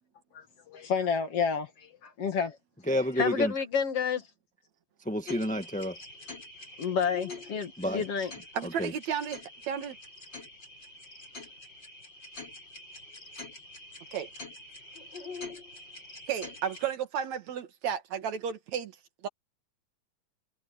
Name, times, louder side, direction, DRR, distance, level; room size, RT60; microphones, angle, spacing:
voice 1, 0.3-1.7 2.0-2.6 3.2-4.2 6.8-8.3, left 6 dB, 55° left, 2.8 m, -29 dB
voice 2, 2.9-3.5 5.0-5.9 7.8-8.0 8.6-8.9, equal, 5° left, 1.0 m, -29 dB
sound 1, 5.3-16.9, left 3 dB, 35° left, 8.3 m, -45 dB
voice 3, 8.5-9.4 9.7-10.0 14.1-14.3 16.3-18.9 19.2-19.3, right 8 dB, 70° right, 2.8 m, -33 dB
omnidirectional pair, 3.4 m